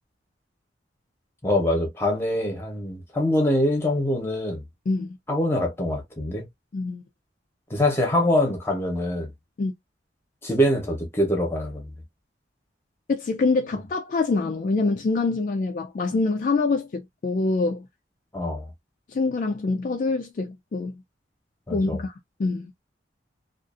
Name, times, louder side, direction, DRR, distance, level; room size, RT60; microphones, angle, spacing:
voice 1, 1.4-4.6 5.3-6.5 7.7-9.3 10.4-11.9 18.3-18.7 21.7-22.0, left 1 dB, 15° left, 0.8 m, -24 dB
voice 2, 4.9-5.2 6.7-7.0 9.6-9.7 13.1-17.9 19.1-21.0 21.7-22.1 22.4-22.7, left 3 dB, 45° left, 0.3 m, -25 dB
2.5 x 2.4 x 2.4 m
head